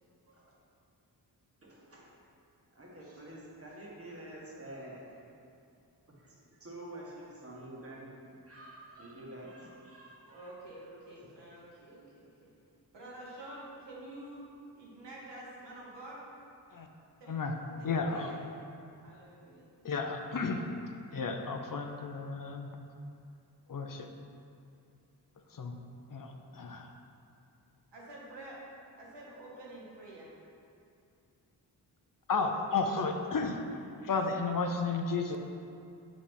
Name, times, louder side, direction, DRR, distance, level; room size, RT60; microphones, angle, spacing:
voice 1, 1.6-2.2 2.7-5.2 6.1-10.5 11.2-11.3, right 1 dB, 35° right, -4 dB, 1.5 m, -48 dB
voice 2, 10.3-12.5 12.9-16.2 17.2-17.3 18.1-18.3 19.0-19.7 27.9-28.7 29.0-30.3, right 1 dB, 85° right, -5 dB, 1.8 m, -48 dB
voice 3, 17.3-18.4 19.8-20.7 21.1-22.7 23.7-24.1 25.4-25.8 26.1-27.0 32.3-35.4, left 4 dB, 50° left, 4 dB, 0.7 m, -33 dB
7.3 x 6.1 x 3.5 m, 2.5 s
cardioid pair, 65°, 41 cm